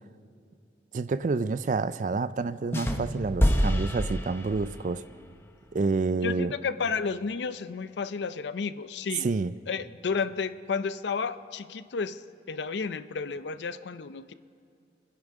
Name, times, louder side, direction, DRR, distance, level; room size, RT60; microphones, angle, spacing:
voice 1, 0.9-5.0 5.7-6.5 9.2-9.5, right 4 dB, 45° right, 15 dB, 0.4 m, -28 dB
sound 1, 2.7-4.9, equal, 15° left, 0.8 m, -27 dB
voice 2, 6.2-9.3 9.7-12.2 12.5-14.3, left 5 dB, 75° left, 13 dB, 0.5 m, -32 dB
29.5 x 10.0 x 3.7 m, 2.4 s
head